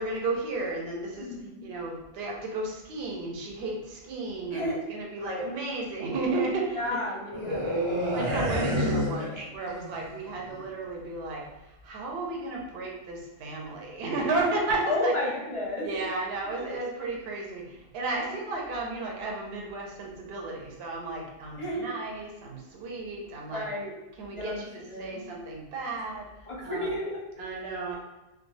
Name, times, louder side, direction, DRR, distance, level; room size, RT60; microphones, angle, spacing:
voice 1, 0.0-1.3 1.6-7.0 8.1-15.1 15.8-23.7 24.2-26.3 26.6-26.9 27.4-28.0, right 3 dB, 65° right, -1 dB, 0.8 m, -33 dB
voice 2, 1.2-1.7 4.5-4.8 5.2-5.5 6.8-7.7 14.3-14.5 14.8-15.9 16.6-16.8 18.1-18.3 21.6-21.9 23.5-23.9 24.3-25.2 26.5-27.2, left 1 dB, 40° left, -5 dB, 0.5 m, -32 dB
sound 1, 7.3-10.0 10.3-10.6, equal, 40° right, 0.4 m, -28 dB
2.2 x 2.2 x 3.1 m, 1.0 s
omnidirectional pair, 1.2 m